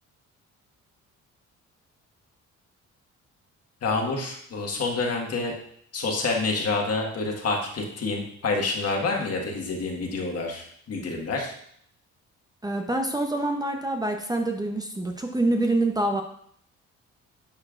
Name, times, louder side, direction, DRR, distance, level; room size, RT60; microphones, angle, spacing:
voice 1, 3.8-5.5 5.9-11.5, left 3 dB, 55° left, 1 dB, 1.7 m, -28 dB
voice 2, 12.6-16.2, right 2 dB, 15° right, 3 dB, 0.7 m, -26 dB
10.5 x 4.4 x 2.5 m, 0.65 s
cardioid pair, 90°, 30 cm